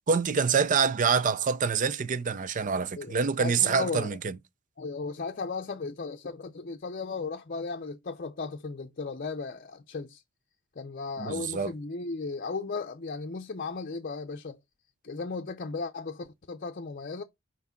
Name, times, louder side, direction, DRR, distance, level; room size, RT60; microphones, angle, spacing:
voice 1, 0.1-4.4 11.2-11.7, right 5 dB, 40° right, 0.5 m, -26 dB
voice 2, 3.0-4.2 4.8-10.2 10.8-14.6 15.0-17.2, left 4 dB, 45° left, 0.6 m, -36 dB
6.0 x 4.6 x 5.7 m
head